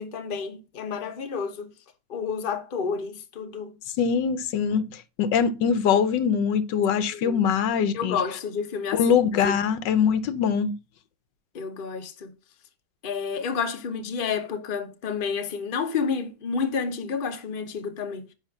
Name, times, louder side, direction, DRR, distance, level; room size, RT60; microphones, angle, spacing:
voice 1, 0.0-1.7 2.1-3.8 7.1-7.4 7.9-9.0 9.4-9.6 11.5-12.3 13.0-18.2, left 5 dB, 35° left, 1.0 m, -30 dB
voice 2, 4.0-8.2 8.9-10.7, left 7 dB, 90° left, 1.5 m, -23 dB
10.0 x 3.5 x 6.0 m
omnidirectional pair, 1.9 m